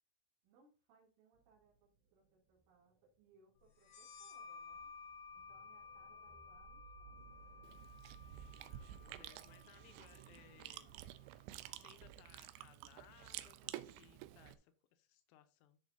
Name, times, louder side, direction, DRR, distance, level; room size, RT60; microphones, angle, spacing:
voice 1, 0.4-4.9 5.3-7.3, right 4 dB, 75° right, -6 dB, 5.4 m, -71 dB
sound 1, 1.3-11.8, right 6 dB, 55° right, 3.1 m, -66 dB
sound 2, 3.8-11.1, left 5 dB, 70° left, 2.5 m, -56 dB
Chewing mastication, 7.6-14.5, right 14 dB, 90° right, 2.6 m, -51 dB
voice 2, 8.7-11.0 11.4-15.8, left 11 dB, 90° left, 9 dB, 3.3 m, -65 dB
13.0 x 6.5 x 2.7 m, 0.36 s
omnidirectional pair, 5.7 m